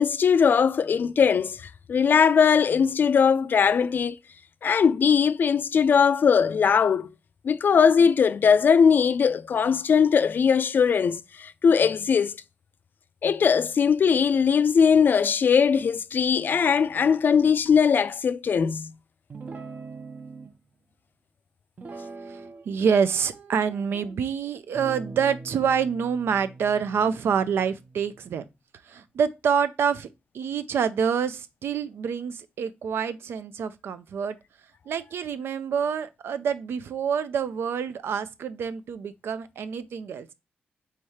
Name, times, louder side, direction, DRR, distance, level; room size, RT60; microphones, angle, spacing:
voice 1, 0.0-4.2 4.6-7.1 7.4-12.4 13.2-18.9, left 6 dB, 55° left, 0.3 m, -20 dB
Guitar, 19.3-20.5 21.8-22.7 23.0-24.1 24.7-28.2, right 3 dB, 45° right, 0.7 m, -42 dB
voice 2, 22.3-28.4 28.9-30.1 30.3-34.4 34.9-40.3, right 7 dB, 80° right, 0.4 m, -27 dB
3.6 x 3.1 x 4.2 m
cardioid pair, 85°, 4 cm